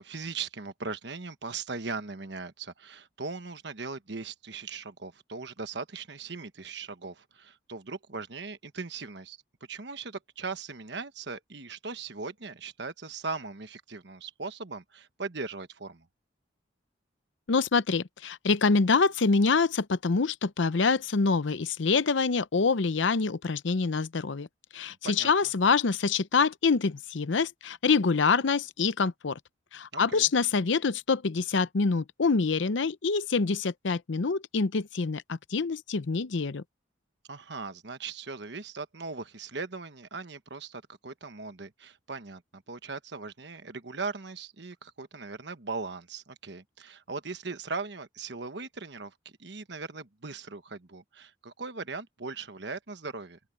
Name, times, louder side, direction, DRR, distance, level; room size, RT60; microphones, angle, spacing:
voice 1, 0.0-9.4 9.7-16.1 25.0-25.3 29.9-30.3 37.3-53.4, right 4 dB, 60° right, 1.2 m, -39 dB
voice 2, 17.5-24.5 24.7-29.4 29.7-36.6, left 4 dB, 70° left, 0.6 m, -26 dB
open air
head